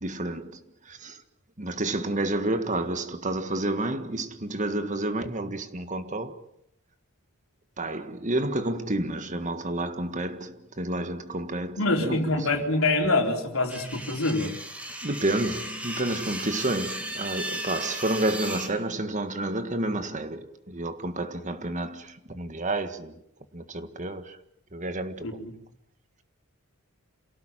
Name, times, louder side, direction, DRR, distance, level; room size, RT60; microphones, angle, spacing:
voice 1, 0.0-1.2 1.6-6.4 7.8-12.6 14.1-14.2 15.0-23.1 23.5-24.4 24.7-25.4, right 2 dB, 35° right, 1.7 m, -30 dB
voice 2, 11.8-14.5 25.2-25.5, left 2 dB, 70° left, 4.1 m, -25 dB
sound 1, 13.7-18.7, right 1 dB, 5° right, 2.6 m, -36 dB
28.0 x 17.5 x 9.2 m
head